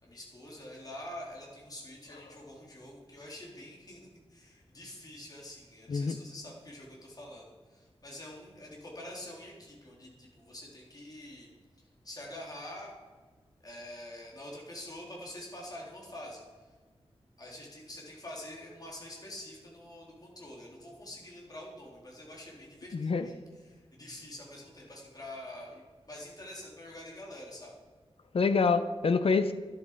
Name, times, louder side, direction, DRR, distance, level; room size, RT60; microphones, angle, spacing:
voice 1, 0.0-11.5 12.0-12.9 13.6-16.7 17.4-23.4 23.6-27.7, left 1 dB, 35° left, -3 dB, 3.8 m, -46 dB
voice 2, 22.9-23.3 28.3-29.5, left 4 dB, 65° left, 11 dB, 0.8 m, -26 dB
12.5 x 11.0 x 5.0 m, 1.4 s
wide cardioid pair, 120°, 11 cm